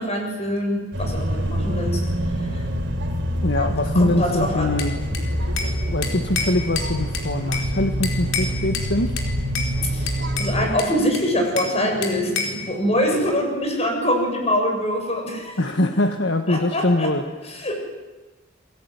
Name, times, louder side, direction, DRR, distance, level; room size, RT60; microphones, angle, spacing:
voice 1, 0.0-2.1 2.3-2.7 3.9-5.1 9.8-15.6 16.5-17.1 17.4-17.8, equal, 30° left, 3 dB, 7.4 m, -24 dB
sound 1, 0.9-10.7, equal, 60° right, 3.6 m, -26 dB
voice 2, 3.4-4.9 5.2-9.2 15.6-17.2, left 1 dB, 60° left, 6 dB, 1.6 m, -23 dB
Bell / Glass, 4.8-5.8 6.0-7.7 8.0-8.9 9.2-9.7 10.1-11.8 12.0-12.6, left 5 dB, 75° left, 4.3 m, -29 dB
sound 2, 6.9-13.8, equal, 35° right, 6.6 m, -43 dB
29.0 x 21.5 x 9.6 m, 1.2 s
head